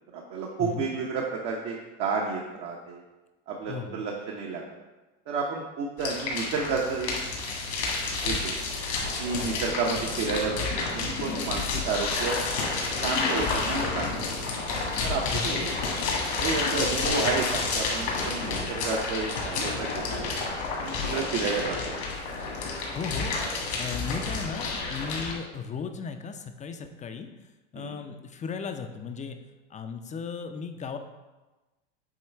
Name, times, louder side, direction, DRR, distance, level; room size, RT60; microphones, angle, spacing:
voice 1, 0.1-3.0 3.5-4.6 5.3-7.1 8.2-8.6 9.2-12.4 13.0-14.3 15.0-15.7 16.4-20.2 20.8-21.9 27.7-28.0, right 4 dB, 55° right, -1 dB, 1.0 m, -31 dB
voice 2, 3.7-4.0 9.5-9.6 15.3-15.6 22.9-27.3 27.7-29.4 29.7-31.0, left 5 dB, 20° left, 7 dB, 0.5 m, -36 dB
sound 1, 6.0-25.3, left 3 dB, 75° left, 1.9 m, -30 dB
7.6 x 3.1 x 4.4 m, 1.2 s
hypercardioid pair, 95°, 36 cm